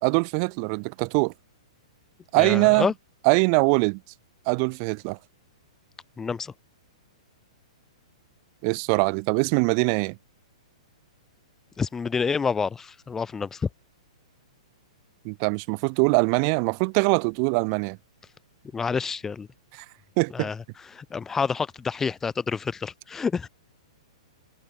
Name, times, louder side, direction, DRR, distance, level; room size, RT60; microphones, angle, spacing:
voice 1, 0.0-1.3 2.3-2.9 3.2-4.0 4.5-5.2 8.6-10.2 15.2-18.0 19.8-19.9 20.2-20.5, right 40 dB or more, 40° right, 0.8 m, -22 dB
voice 2, 2.3-2.9 6.2-6.5 11.8-13.7 18.7-19.5 20.3-20.6 20.9-23.5, left 5 dB, 10° left, 0.3 m, -28 dB
figure-of-eight pair, 110°, 3 cm